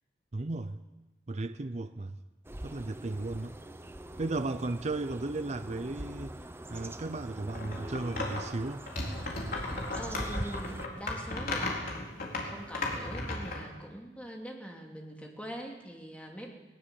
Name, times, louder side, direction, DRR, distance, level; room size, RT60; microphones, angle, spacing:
voice 1, 0.3-0.8 1.3-2.2 2.6-3.6 4.2-6.3 6.7-8.9, right 2 dB, 40° right, 10 dB, 0.6 m, -35 dB
sound 1, 2.5-10.9, right 1 dB, 15° right, 0.8 m, -43 dB
sound 2, 7.5-8.5 8.9-13.6, left 2 dB, 55° left, 4.2 m, -35 dB
voice 2, 9.5-16.5, equal, 5° left, 0 dB, 2.9 m, -43 dB
20.0 x 18.5 x 7.1 m, 1.1 s
head